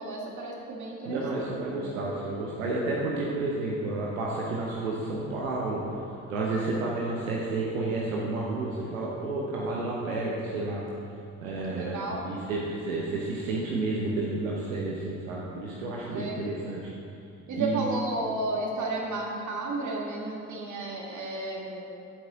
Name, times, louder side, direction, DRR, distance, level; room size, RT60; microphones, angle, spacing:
voice 1, 0.0-1.5 6.5-6.7 11.7-12.4 16.1-16.4 17.5-21.9, right 2 dB, 45° right, -1 dB, 1.9 m, -33 dB
voice 2, 1.0-5.8 6.3-10.8 11.4-16.9 17.6-17.9, right 2 dB, 80° right, -3 dB, 0.9 m, -31 dB
10.0 x 8.2 x 3.7 m, 2.6 s
figure-of-eight pair, 45°, 40 cm